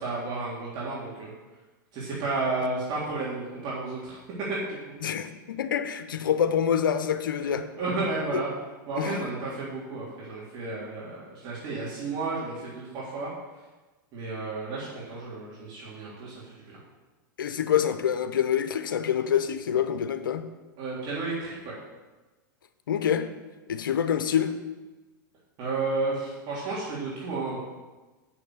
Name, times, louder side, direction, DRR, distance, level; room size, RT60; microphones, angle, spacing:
voice 1, 0.0-1.3 1.9-4.2 4.5-4.9 7.8-8.5 8.9-13.3 14.1-16.8 20.8-21.7 25.6-27.6, right 3 dB, 45° right, -7 dB, 3.5 m, -32 dB
voice 2, 5.0-7.7 8.3-8.4 9.0-9.2 17.4-20.5 22.9-23.3 23.7-24.5, left 8 dB, 85° left, 10 dB, 0.8 m, -26 dB
7.6 x 6.1 x 7.9 m, 1.2 s
hypercardioid pair, 115°, 11 cm